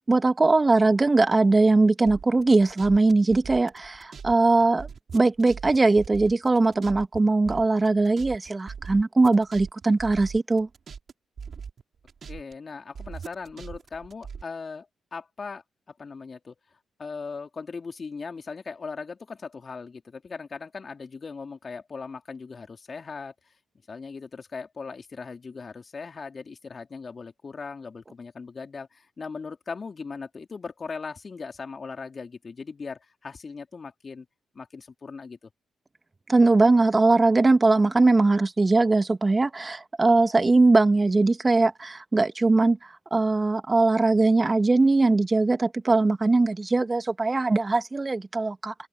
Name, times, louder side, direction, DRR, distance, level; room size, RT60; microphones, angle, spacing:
voice 1, 0.1-4.9 5.1-10.7 36.3-48.7, right 3 dB, 30° right, 2.1 m, -21 dB
sound 1, 2.0-4.3 4.6-7.2 7.4-11.1 11.4-12.5 12.9-14.4, right 6 dB, 55° right, 4.9 m, -40 dB
voice 2, 12.3-15.6 16.0-16.6 17.0-23.3 23.9-34.3 34.5-35.5, left 4 dB, 45° left, 3.5 m, -39 dB
hypercardioid pair, 40°, 0 cm